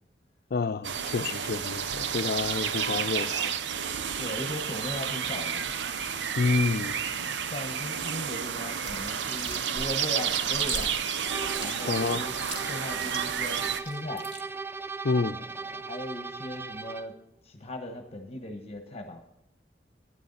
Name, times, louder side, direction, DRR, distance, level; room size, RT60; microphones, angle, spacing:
voice 1, 0.5-3.5 6.4-7.0 11.9-12.2 15.0-15.4, left 4 dB, 60° left, 0.5 m, -28 dB
sound 1, 0.8-13.8, right 7 dB, 85° right, 0.6 m, -31 dB
voice 2, 4.0-5.7 6.6-11.0 11.6-12.3 12.6-14.3 15.3-17.1 17.4-19.2, left 1 dB, 35° left, 1.1 m, -38 dB
Chewing mastication, 8.8-14.4, right 1 dB, 30° right, 2.3 m, -39 dB
sound 2, 11.3-17.2, right 4 dB, 15° right, 0.4 m, -38 dB
12.5 x 10.0 x 4.0 m
head